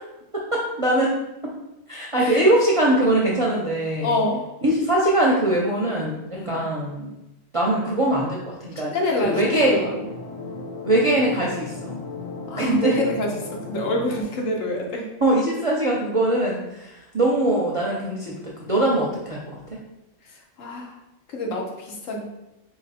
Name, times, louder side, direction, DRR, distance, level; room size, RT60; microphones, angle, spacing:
voice 1, 0.3-1.1 1.4-1.5 1.9-4.2 4.6-7.1 7.5-8.9 9.2-9.8 10.8-12.0 12.5-13.0 15.2-19.6, right 1 dB, 40° right, -4 dB, 0.5 m, -22 dB
voice 2, 4.0-4.4 6.3-6.6 8.8-9.9 12.5-13.3 13.7-15.0 20.6-20.9 21.3-21.7 22.1-22.2, left 1 dB, 75° left, 0 dB, 1.2 m, -26 dB
sound 1, 9.2-14.2, left 3 dB, 35° left, 0.6 m, -35 dB
4.2 x 2.8 x 4.1 m, 0.93 s
omnidirectional pair, 1.4 m